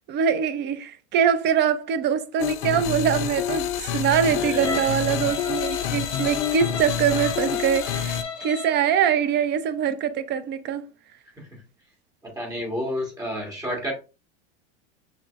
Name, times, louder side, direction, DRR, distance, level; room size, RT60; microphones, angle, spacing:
voice 1, 0.1-10.8, right 8 dB, 30° right, 0.4 m, -23 dB
sound 1, 2.4-8.2, left 10 dB, 50° left, 0.4 m, -28 dB
voice 2, 4.4-5.0 11.4-11.5 12.2-13.9, equal, 10° right, 1.6 m, -31 dB
Bowed string instrument, 4.6-8.8, left 4 dB, 15° left, 1.1 m, -34 dB
5.7 x 2.1 x 2.4 m
hypercardioid pair, 105°, 35 cm